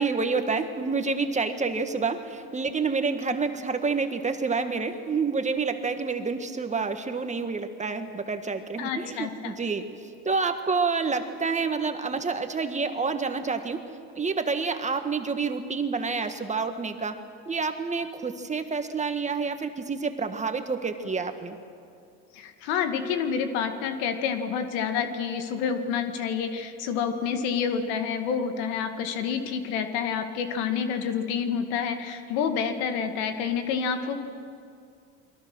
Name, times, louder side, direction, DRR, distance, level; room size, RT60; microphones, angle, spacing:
voice 1, 0.0-9.8 10.2-13.8 14.1-17.1 17.5-21.6, right 4 dB, 20° right, 7 dB, 1.7 m, -28 dB
voice 2, 8.8-9.5 22.3-34.2, left 7 dB, 85° left, 7 dB, 2.2 m, -28 dB
29.0 x 22.0 x 6.3 m, 2.4 s
supercardioid pair, 105°, 33 cm